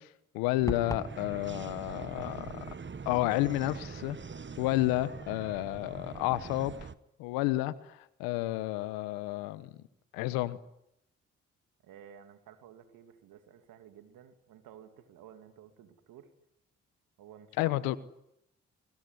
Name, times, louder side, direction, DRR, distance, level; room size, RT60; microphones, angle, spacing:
voice 1, 0.3-2.6 3.0-4.2 4.6-6.7 7.2-9.7 10.1-10.6 17.6-18.0, left 17 dB, 85° left, 16 dB, 1.2 m, -31 dB
sound 1, 0.6-6.9, right 5 dB, 35° right, 1.4 m, -43 dB
sound 2, 0.7-1.2, left 1 dB, 10° left, 2.4 m, -36 dB
voice 2, 11.8-16.3 17.2-18.0, right 9 dB, 80° right, 8 dB, 2.7 m, -53 dB
25.0 x 24.0 x 9.8 m, 0.80 s
hypercardioid pair, 40°, 33 cm